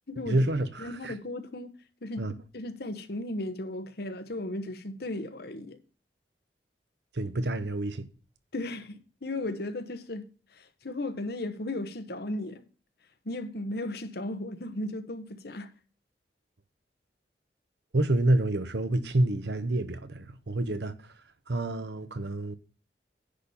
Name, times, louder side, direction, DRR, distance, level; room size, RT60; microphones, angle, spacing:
voice 1, 0.3-1.1 2.2-2.3 7.1-8.1 17.9-21.1 21.5-22.6, right 1 dB, 70° right, 0.9 m, -28 dB
voice 2, 0.8-1.7 2.0-2.3 2.5-5.8 8.5-10.3 10.5-12.6 13.2-15.7, left 1 dB, 60° left, 1.1 m, -35 dB
10.0 x 4.2 x 7.0 m
head